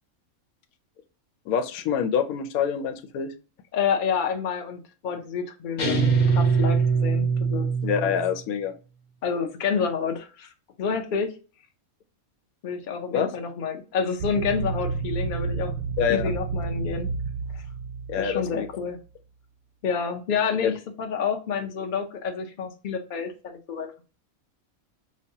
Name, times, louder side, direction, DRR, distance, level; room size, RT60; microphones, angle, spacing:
voice 1, 1.5-3.3 7.8-8.7 13.1-13.3 16.0-16.3 18.1-18.7 20.6-20.8, left 8 dB, 85° left, 8 dB, 1.1 m, -26 dB
voice 2, 3.7-6.0 6.3-7.7 9.2-10.5 10.8-11.3 12.6-15.7 16.1-17.1 17.5-17.6 18.2-19.0 19.8-20.7 21.0-24.0, left 6 dB, 45° left, 4 dB, 0.7 m, -28 dB
sound 1, 5.8-8.4, right 5 dB, 65° left, 1.3 m, -22 dB
sound 2, 14.2-18.9, right 4 dB, 65° right, 0.8 m, -31 dB
5.3 x 2.2 x 2.7 m, 0.35 s
omnidirectional pair, 1.5 m